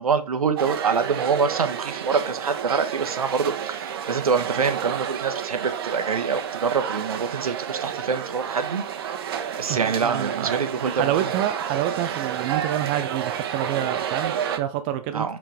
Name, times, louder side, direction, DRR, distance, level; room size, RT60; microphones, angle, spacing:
voice 1, 0.0-8.8 9.6-11.3 15.1-15.4, right 5 dB, 65° right, 1.0 m, -25 dB
sound 1, 0.6-14.6, right 9 dB, 35° right, 0.9 m, -30 dB
voice 2, 9.7-15.4, right 12 dB, 15° right, 0.4 m, -28 dB
6.3 x 4.4 x 4.7 m
figure-of-eight pair, 125°, 20 cm